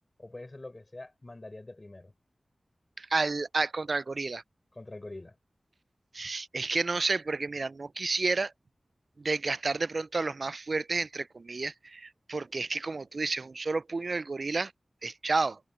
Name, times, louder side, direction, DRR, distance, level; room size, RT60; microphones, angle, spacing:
voice 1, 0.2-2.1 4.7-5.4, left 2 dB, 35° left, 5.0 m, -44 dB
voice 2, 3.0-4.4 6.1-8.5 9.2-14.7 15.0-15.6, right 3 dB, 60° right, 0.3 m, -31 dB
wide cardioid pair, 60°, 0 cm